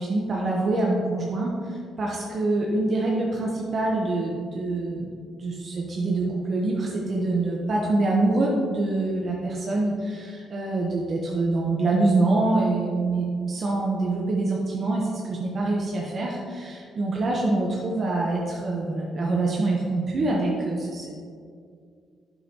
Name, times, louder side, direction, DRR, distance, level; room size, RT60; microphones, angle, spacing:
voice 1, 0.0-21.2, right 2 dB, 50° right, -2 dB, 1.1 m, -25 dB
8.0 x 6.5 x 3.0 m, 2.2 s
cardioid pair, 90°, 0 cm